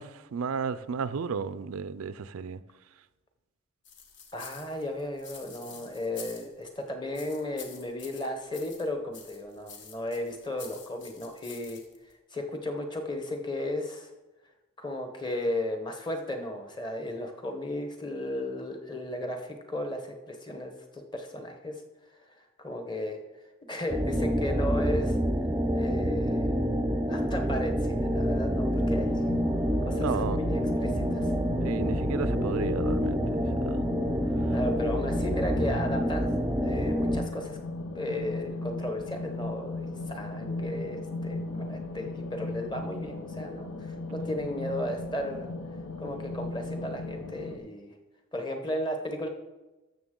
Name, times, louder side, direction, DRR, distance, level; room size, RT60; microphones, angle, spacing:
voice 1, 0.0-2.6 30.0-30.4 31.6-33.8, right 5 dB, 85° right, 0.4 m, -33 dB
sound 1, 3.8-6.8 7.1-8.9 9.1-12.1, left 6 dB, 55° left, 1.3 m, -48 dB
voice 2, 4.3-11.8 12.3-14.1 14.8-21.8 22.1-23.2 23.7-25.2 25.7-26.5 27.1-29.2 29.8-31.3 34.5-37.6 37.9-45.5 46.0-47.9 48.3-49.3, left 1 dB, 20° left, 1.0 m, -35 dB
sound 2, 23.9-37.2, equal, 10° right, 0.4 m, -27 dB
sound 3, 28.9-47.6, left 2 dB, 85° left, 0.9 m, -37 dB
13.0 x 6.6 x 3.8 m
head